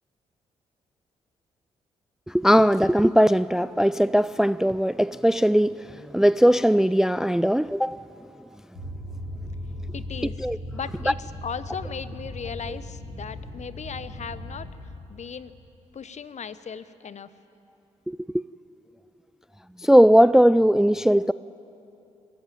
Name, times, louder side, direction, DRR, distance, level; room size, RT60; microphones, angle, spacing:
voice 1, 2.3-5.9 6.1-8.0 10.4-10.6 12.7-12.8 18.1-18.4 19.8-21.3, equal, 5° right, 0.4 m, -19 dB
sound 1, 8.7-14.7, left 1 dB, 85° left, 5.4 m, -37 dB
voice 2, 9.9-10.5 10.7-14.7 15.1-15.5 15.9-17.3, left 6 dB, 50° left, 1.0 m, -37 dB
23.0 x 14.0 x 9.2 m
hypercardioid pair, 40°, 15 cm